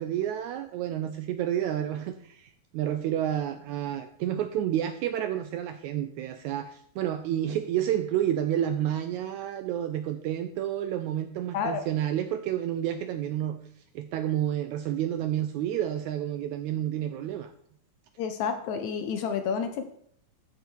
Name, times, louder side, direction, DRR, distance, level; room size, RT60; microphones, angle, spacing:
voice 1, 0.0-13.6 13.9-17.5, right 11 dB, 80° right, 9 dB, 1.7 m, -30 dB
voice 2, 18.2-19.8, left 6 dB, 75° left, 8 dB, 1.8 m, -30 dB
14.0 x 5.0 x 4.5 m, 0.65 s
omnidirectional pair, 3.8 m